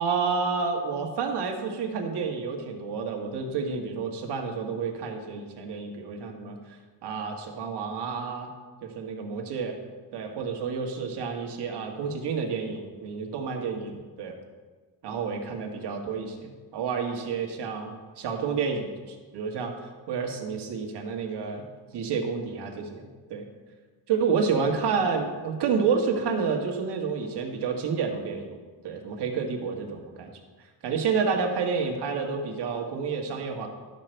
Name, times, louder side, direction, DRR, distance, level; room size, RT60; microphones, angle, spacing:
voice 1, 0.0-8.5 8.8-9.7 10.1-14.3 15.0-21.6 21.9-23.5 24.1-28.6 28.8-30.3 30.6-33.7, right 5 dB, 75° right, 2 dB, 1.7 m, -30 dB
12.0 x 6.6 x 4.5 m, 1.4 s
cardioid pair, 115°, 41 cm